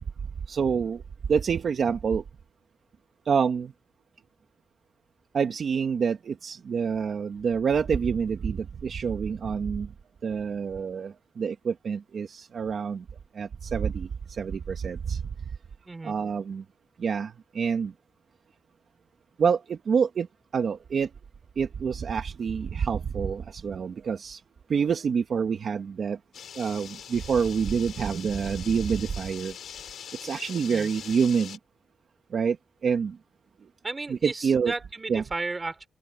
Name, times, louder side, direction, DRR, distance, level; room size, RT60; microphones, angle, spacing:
voice 1, 0.5-1.0 1.3-2.2 3.3-3.7 5.3-9.9 10.2-13.0 13.3-15.2 16.0-16.6 17.0-17.9 19.4-20.3 20.5-21.1 21.6-24.4 24.7-26.2 26.5-29.5 30.2-31.6 32.3-32.6 32.8-33.2 34.1-34.7 35.1-35.2, right 6 dB, 60° right, 1.3 m, -27 dB
sound 1, 26.3-31.6, left 9 dB, 80° left, 6.1 m, -43 dB
voice 2, 33.8-35.9, right 3 dB, 25° right, 4.3 m, -34 dB
cardioid pair, 115°, 0 cm